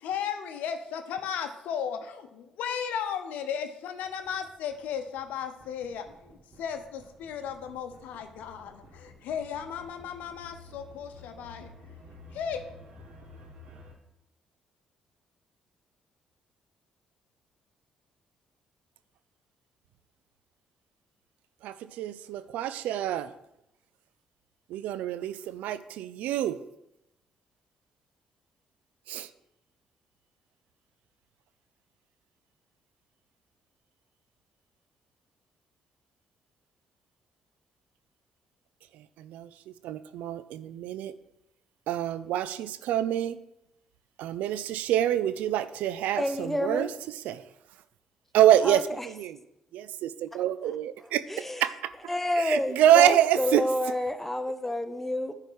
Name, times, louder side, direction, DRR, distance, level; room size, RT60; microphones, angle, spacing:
voice 1, 0.0-11.7 12.3-12.6, left 8 dB, 70° left, 0.8 m, -35 dB
sound 1, 4.0-13.9, left 1 dB, 55° right, 1.8 m, -52 dB
voice 2, 21.6-23.3 24.7-26.6 29.1-29.3 38.9-41.1 41.9-43.4 44.2-46.9 47.2-47.4 48.3-49.4 49.7-51.9 52.4-53.7, right 11 dB, 70° right, 0.4 m, -26 dB
voice 3, 46.2-46.9 48.6-49.1 50.3-50.4 51.3-51.6 52.1-55.3, left 1 dB, 10° left, 0.9 m, -29 dB
10.0 x 3.5 x 6.3 m
hypercardioid pair, 45°, 3 cm